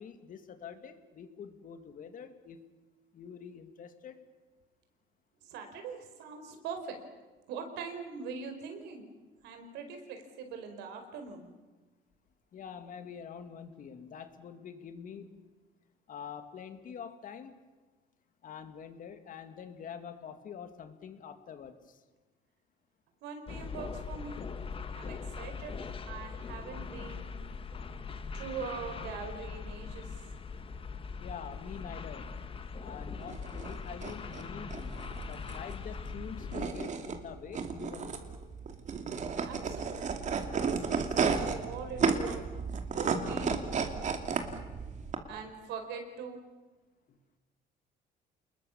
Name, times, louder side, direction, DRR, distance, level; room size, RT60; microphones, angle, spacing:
voice 1, 0.0-2.6 3.1-4.3 12.5-15.5 16.1-17.6 18.4-22.0 31.2-32.3 32.8-38.3 47.1-47.2, left 7 dB, 55° left, 8 dB, 2.4 m, -46 dB
voice 2, 5.4-7.0 7.5-9.0 9.4-11.5 23.2-24.4 24.9-25.8 26.1-27.3 28.3-30.2 39.4-40.2 40.5-40.6 40.9-42.4 43.0-43.6 45.3-46.4, right 5 dB, 85° right, 6 dB, 4.8 m, -42 dB
sound 1, 23.5-36.7, left 5 dB, 30° left, 1.6 m, -41 dB
sound 2, 33.2-45.2, right 5 dB, 45° right, 2.7 m, -33 dB
28.5 x 21.0 x 7.3 m, 1.2 s
cardioid pair, 110°, 17 cm